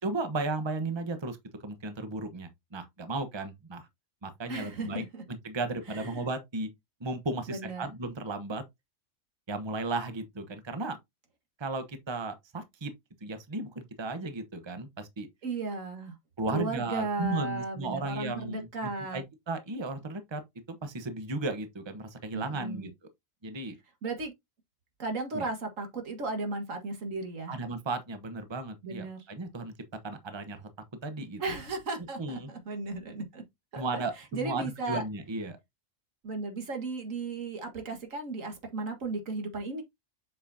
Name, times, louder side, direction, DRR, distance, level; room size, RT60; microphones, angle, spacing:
voice 1, 0.0-1.4 1.6-3.9 4.2-6.7 7.0-8.6 9.5-11.0 11.6-12.9 13.2-15.3 16.4-20.4 20.7-22.9 23.4-23.7 25.3-25.4 27.5-29.7 30.0-30.7 31.0-31.4 32.2-32.5 33.8-35.6, right 2 dB, 25° right, 0.9 m, -35 dB
voice 2, 4.5-5.2 5.9-6.2 7.5-7.9 15.4-16.1 16.5-19.2 22.3-22.9 24.0-24.3 25.0-27.5 28.8-29.2 31.4-33.4 33.7-34.0 34.3-35.0 36.2-39.8, right 3 dB, 85° right, 2.0 m, -35 dB
7.4 x 5.4 x 2.7 m
omnidirectional pair, 1.3 m